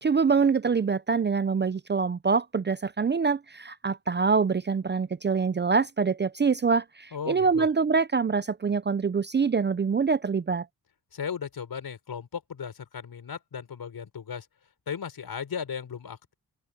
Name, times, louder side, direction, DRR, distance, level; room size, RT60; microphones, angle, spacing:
voice 1, 0.0-10.7, right 5 dB, 30° right, 0.5 m, -25 dB
voice 2, 7.1-7.7 11.1-14.5 14.9-16.3, left 7 dB, 65° left, 5.8 m, -36 dB
open air
cardioid pair, 75°, 40 cm